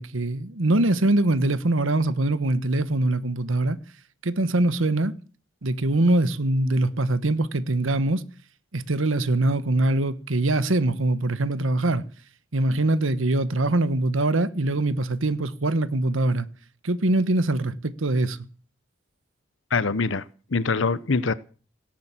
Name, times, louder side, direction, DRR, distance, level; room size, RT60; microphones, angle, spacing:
voice 1, 0.0-3.8 4.2-5.1 5.6-8.2 8.7-12.0 12.5-16.5 16.8-18.4, right 2 dB, 80° right, 1.3 m, -23 dB
voice 2, 19.7-20.2 20.5-21.3, left 4 dB, 70° left, 0.8 m, -23 dB
18.0 x 10.5 x 7.5 m
head